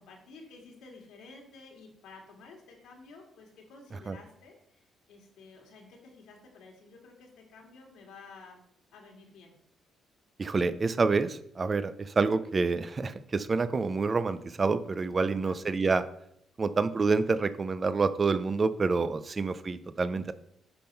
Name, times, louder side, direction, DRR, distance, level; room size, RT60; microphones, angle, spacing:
voice 1, 0.0-8.6 8.9-9.5 15.4-15.6 19.2-19.3, left 3 dB, 90° left, 1 dB, 2.1 m, -52 dB
voice 2, 10.4-16.0 16.6-20.3, right 4 dB, 35° right, 13 dB, 0.5 m, -27 dB
10.0 x 3.7 x 5.4 m, 0.73 s
cardioid pair, 90°, 0 cm